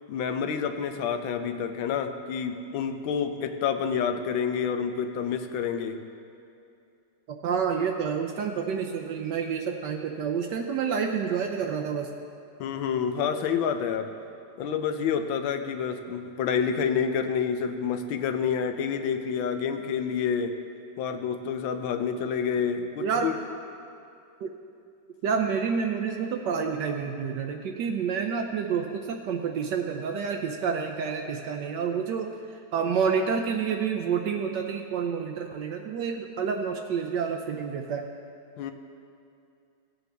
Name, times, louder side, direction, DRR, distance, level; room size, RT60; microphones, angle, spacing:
voice 1, 0.1-6.0 12.6-14.1 14.6-20.5 21.0-23.3 38.6-38.7, left 7 dB, 85° left, 7 dB, 1.5 m, -28 dB
voice 2, 7.3-12.1 23.0-23.3 24.4-24.5 25.2-38.1, right 6 dB, 70° right, 3 dB, 1.1 m, -29 dB
16.0 x 8.1 x 3.4 m, 2.5 s
omnidirectional pair, 2.1 m